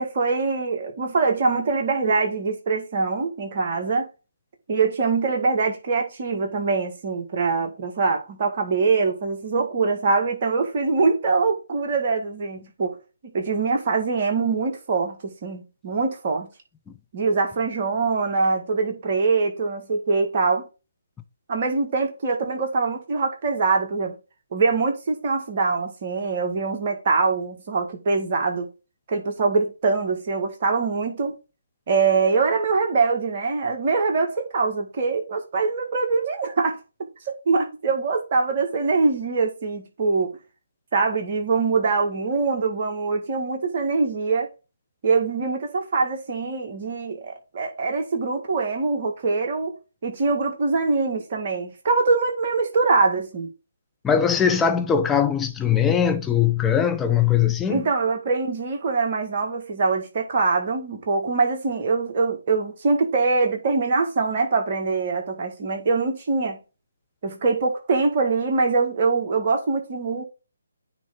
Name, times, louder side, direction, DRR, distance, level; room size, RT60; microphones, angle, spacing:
voice 1, 0.0-4.1 4.7-13.0 13.3-16.5 17.1-20.6 21.5-24.1 24.5-28.7 29.1-31.3 31.9-36.8 37.3-40.4 40.9-44.5 45.0-49.8 50.0-53.5 57.7-66.6 67.2-70.2, right 4 dB, 40° right, 1.8 m, -23 dB
voice 2, 54.0-57.9, left 8 dB, 10° left, 0.7 m, -20 dB
9.4 x 3.3 x 3.8 m
figure-of-eight pair, 145°, 0 cm